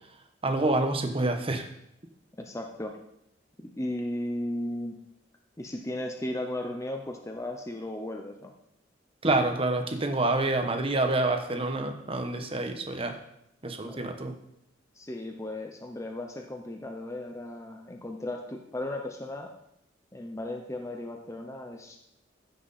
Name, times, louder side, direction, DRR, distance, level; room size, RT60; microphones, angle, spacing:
voice 1, 0.4-1.7 9.2-13.2 13.6-14.4, right 2 dB, 30° right, 6 dB, 1.1 m, -27 dB
voice 2, 2.4-3.0 3.6-5.0 5.6-8.5 13.8-14.0 15.0-19.5 20.1-22.0, left 1 dB, 15° left, 3 dB, 0.7 m, -36 dB
15.0 x 6.1 x 4.1 m, 0.79 s
head